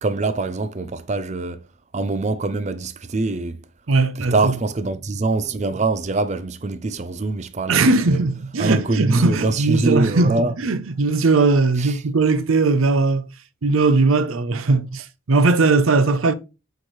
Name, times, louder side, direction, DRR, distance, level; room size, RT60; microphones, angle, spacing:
voice 1, 0.0-1.6 1.9-3.6 4.2-8.2 8.6-10.5 11.8-12.0, right 3 dB, 35° right, 0.5 m, -24 dB
voice 2, 3.9-4.5 7.7-13.3 13.6-16.3, right 3 dB, 90° right, 0.7 m, -19 dB
8.0 x 4.7 x 3.1 m
head